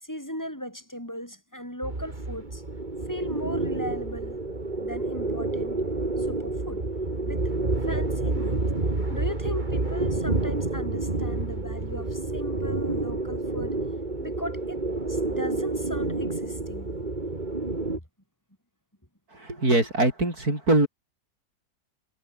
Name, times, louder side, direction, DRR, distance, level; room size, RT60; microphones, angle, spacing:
voice 1, 0.0-2.6 3.1-4.4 4.8-5.8 6.2-6.8 7.2-7.4 7.8-8.6 9.1-13.8 14.2-14.8 15.1-16.9, equal, 10° left, 6.6 m, -37 dB
sound 1, 1.8-18.0, right 2 dB, 30° right, 2.8 m, -29 dB
voice 2, 19.5-20.9, right 2 dB, 65° right, 7.4 m, -22 dB
omnidirectional pair, 1.7 m